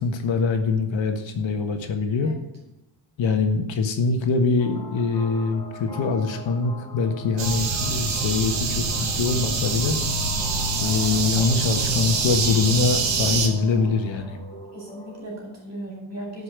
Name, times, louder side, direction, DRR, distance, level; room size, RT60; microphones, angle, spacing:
voice 1, 0.0-2.3 3.2-10.0 10.8-14.4, left 4 dB, 70° left, 6 dB, 1.5 m, -23 dB
sound 1, 4.6-15.2, left 1 dB, 10° left, 4.4 m, -41 dB
sound 2, 7.4-13.5, right 4 dB, 65° right, 1.9 m, -25 dB
voice 2, 14.7-16.4, right 1 dB, 35° right, -1 dB, 4.7 m, -37 dB
13.0 x 5.6 x 6.8 m, 0.96 s
wide cardioid pair, 160°, 47 cm